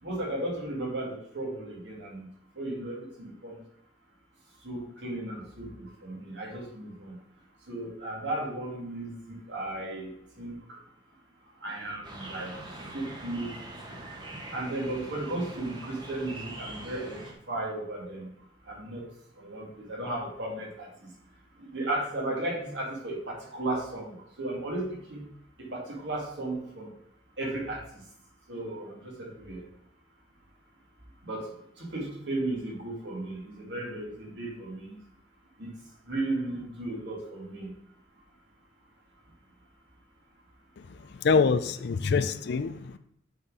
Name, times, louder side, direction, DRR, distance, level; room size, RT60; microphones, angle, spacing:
voice 1, 0.0-2.3 2.6-3.6 4.6-7.2 7.7-10.8 11.6-13.6 13.9-14.0 14.5-18.3 18.7-19.0 19.4-21.1 21.6-25.2 25.6-26.9 27.4-28.0 28.5-29.7 31.2-35.0 35.6-35.7 36.1-37.7, right 2 dB, 65° right, 2.5 m, -35 dB
sound 1, 12.0-17.3, right 1 dB, 25° right, 1.2 m, -43 dB
voice 2, 40.9-43.0, left 5 dB, 60° left, 0.4 m, -25 dB
7.9 x 4.3 x 4.8 m
head